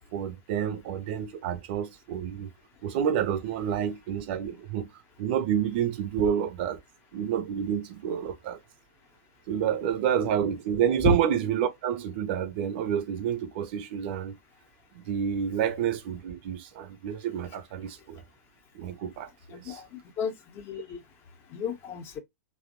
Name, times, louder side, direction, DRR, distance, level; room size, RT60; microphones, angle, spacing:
voice 1, 0.1-2.5 2.8-4.9 5.2-6.8 7.1-8.6 9.5-14.3 14.9-18.2 18.7-19.8, right 9 dB, 45° right, 0.6 m, -29 dB
voice 2, 19.5-19.9 20.2-21.0 21.5-22.2, left 4 dB, 30° left, 0.6 m, -30 dB
2.8 x 2.0 x 2.5 m
figure-of-eight pair, 100°, 8 cm